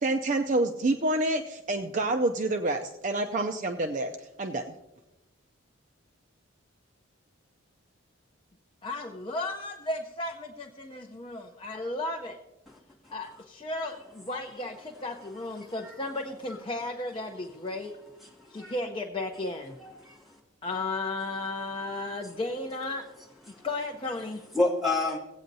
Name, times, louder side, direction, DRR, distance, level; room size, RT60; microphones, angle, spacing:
voice 1, 0.0-4.7, right 2 dB, 35° right, 6 dB, 0.4 m, -28 dB
voice 2, 8.8-12.4 13.1-18.0 18.5-19.7 20.6-23.1 23.6-24.4, left 2 dB, 25° left, 2 dB, 0.6 m, -34 dB
voice 3, 14.3-14.6 15.2-16.0 18.2-18.8 19.8-20.4 21.8-22.1 23.4-23.7 24.5-25.2, left 2 dB, ahead, -3 dB, 1.7 m, -32 dB
17.5 x 8.6 x 2.6 m, 1.0 s
head